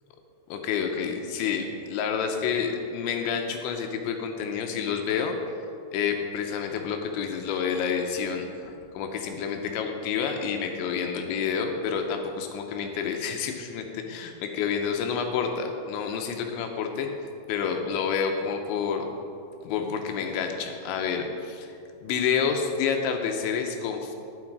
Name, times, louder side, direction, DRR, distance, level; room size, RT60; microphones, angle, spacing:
voice 1, 0.5-5.4 5.9-14.3 14.6-17.1 17.5-19.1 19.6-21.7 22.0-24.2, left 6 dB, 80° left, 4 dB, 2.9 m, -29 dB
11.5 x 9.8 x 4.7 m, 2.6 s
omnidirectional pair, 5.7 m